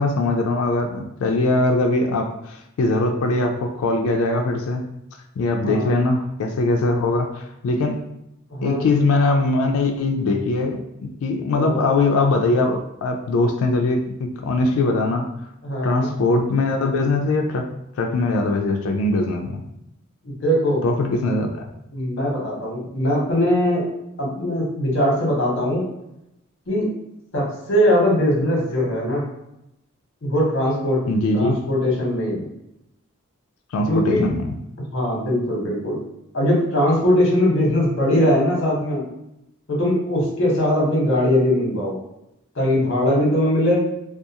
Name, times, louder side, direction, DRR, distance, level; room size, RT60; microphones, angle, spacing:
voice 1, 0.0-4.8 5.4-8.0 8.6-15.3 15.8-17.7 18.0-19.6 20.8-21.7 31.1-31.6 33.7-34.6, left 2 dB, 80° left, 3 dB, 0.3 m, -21 dB
voice 2, 5.6-6.0 8.5-8.9 11.5-11.9 15.6-16.1 20.2-20.8 21.9-23.8 24.2-25.8 26.7-26.9 27.3-29.2 30.2-31.0 31.3-32.5 33.9-34.2 34.9-36.0 36.3-39.0 39.7-42.0 42.5-43.9, left 1 dB, 60° left, -3 dB, 0.9 m, -20 dB
2.4 x 2.3 x 2.8 m, 0.85 s
head